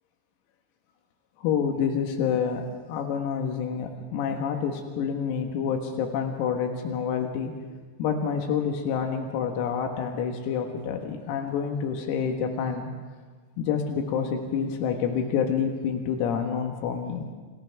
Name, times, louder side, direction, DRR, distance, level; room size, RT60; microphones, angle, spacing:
voice 1, 1.4-7.5 8.0-12.9 13.6-17.3, left 7 dB, 85° left, 3 dB, 4.2 m, -28 dB
28.5 x 27.5 x 3.5 m, 1.4 s
omnidirectional pair, 6.0 m